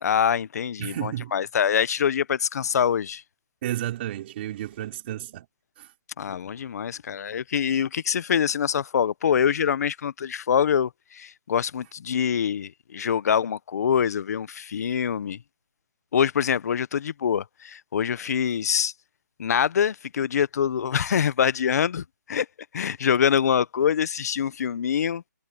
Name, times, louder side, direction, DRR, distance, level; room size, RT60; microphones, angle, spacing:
voice 1, 0.0-3.2 6.2-15.4 16.1-18.9 19.4-22.5 22.7-25.2, left 8 dB, 55° left, 0.9 m, -25 dB
voice 2, 0.8-1.3 3.6-5.5 5.8-5.9, right 13 dB, 35° right, 3.3 m, -32 dB
hypercardioid pair, 160°, 10 cm